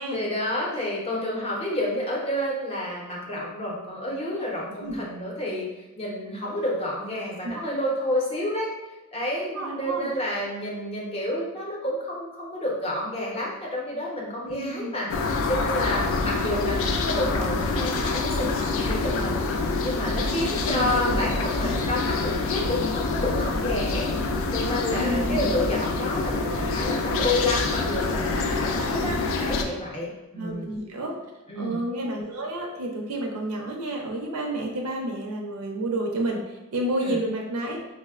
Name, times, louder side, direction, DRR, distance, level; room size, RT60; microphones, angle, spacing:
voice 1, 0.1-5.7 6.0-8.7 9.1-15.1 15.5-19.4 19.8-24.1 24.5-30.7 31.5-31.8 37.0-37.2, left 1 dB, 25° left, -3 dB, 0.7 m, -29 dB
voice 2, 9.5-10.1 14.5-15.0 20.3-21.8 24.9-25.5 30.4-31.1 31.6-36.4 36.7-37.8, right 1 dB, 80° right, 1 dB, 0.5 m, -30 dB
sound 1, 15.1-29.6, left 3 dB, 65° left, 0.3 m, -26 dB
4.1 x 2.0 x 2.3 m, 1.0 s
head